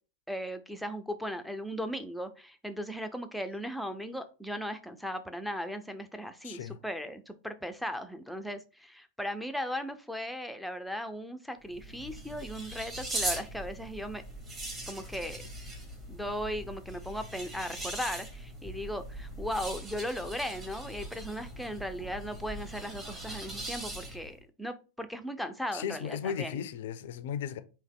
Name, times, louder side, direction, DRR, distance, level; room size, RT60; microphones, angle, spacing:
voice 1, 0.3-14.2 14.9-15.4 16.1-26.6, equal, ahead, 0.5 m, -37 dB
voice 2, 6.4-6.8 25.7-27.6, left 8 dB, 55° left, 0.4 m, -36 dB
sound 1, 11.6-24.4, right 1 dB, 20° right, 1.5 m, -40 dB
3.5 x 2.8 x 3.7 m
figure-of-eight pair, 90°, 0 cm